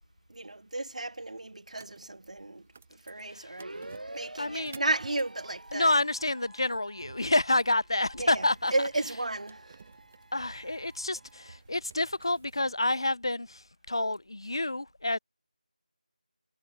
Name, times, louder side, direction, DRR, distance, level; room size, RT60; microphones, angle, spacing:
voice 1, 0.3-2.7 3.0-5.9 8.2-9.8, right 2 dB, 60° right, 0.6 m, -34 dB
sound 1, 1.7-12.7, right 5 dB, 10° right, 0.9 m, -55 dB
sound 2, 3.6-11.6, right 1 dB, 85° right, 4.6 m, -50 dB
voice 2, 4.4-4.8 5.7-8.7 10.3-15.2, left 2 dB, 35° left, 0.5 m, -29 dB
figure-of-eight pair, 180°, 4 cm